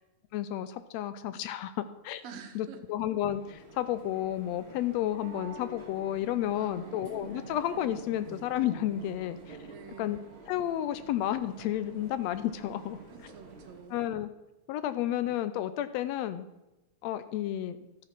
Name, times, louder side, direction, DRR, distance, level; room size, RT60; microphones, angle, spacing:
voice 1, 0.3-2.2 2.5-9.6 10.0-10.2 10.5-13.0 13.9-14.3 14.7-16.5 17.0-17.8, left 12 dB, 80° left, 12 dB, 1.6 m, -31 dB
voice 2, 2.2-2.8 6.5-7.0 9.6-10.3 13.1-14.1, right 6 dB, 65° right, 4 dB, 2.1 m, -48 dB
sound 1, 3.1-13.9, right 3 dB, 30° right, 1.4 m, -48 dB
12.5 x 6.9 x 5.8 m, 1.0 s
omnidirectional pair, 3.3 m